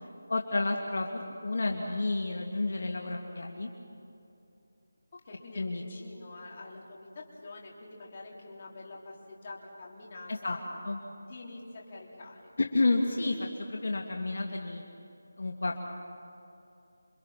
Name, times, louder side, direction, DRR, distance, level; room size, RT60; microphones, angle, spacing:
voice 1, 0.3-3.7 5.6-5.8 10.3-10.6 10.8-11.0 12.6-14.8 15.4-15.8, left 2 dB, 60° left, 1 dB, 2.2 m, -30 dB
voice 2, 5.1-10.6 11.3-12.6, left 2 dB, 30° left, -3 dB, 3.7 m, -46 dB
28.0 x 24.5 x 5.9 m, 2.7 s
figure-of-eight pair, 175°, 0 cm